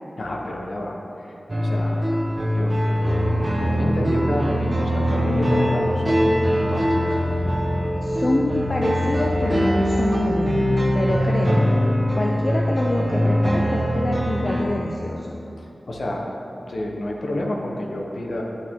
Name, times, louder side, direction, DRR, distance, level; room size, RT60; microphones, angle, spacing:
voice 1, 0.2-1.4 1.6-2.0 2.3-7.2 15.6-16.3 16.7-18.4, left 1 dB, 65° left, 0 dB, 1.0 m, -29 dB
sound 1, 1.5-14.6, equal, 30° right, 1.1 m, -22 dB
voice 2, 8.0-11.7 12.2-15.4, left 1 dB, 40° left, -1 dB, 0.5 m, -26 dB
11.0 x 5.7 x 3.7 m, 2.9 s
wide cardioid pair, 95°, 0 cm